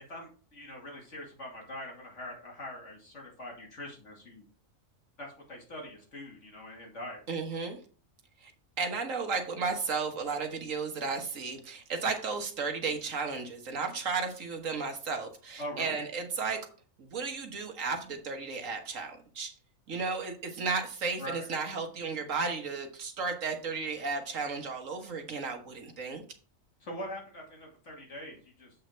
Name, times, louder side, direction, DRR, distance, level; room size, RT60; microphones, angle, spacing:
voice 1, 0.1-4.4 5.2-7.2 15.6-16.0 21.2-21.5 26.8-28.7, left 1 dB, 60° left, -1 dB, 2.9 m, -43 dB
voice 2, 7.3-7.8 8.4-8.5 8.8-16.7 17.0-19.5 19.9-26.2, right 4 dB, 70° right, 5 dB, 1.7 m, -34 dB
7.7 x 5.7 x 4.4 m, 0.41 s
omnidirectional pair, 1.4 m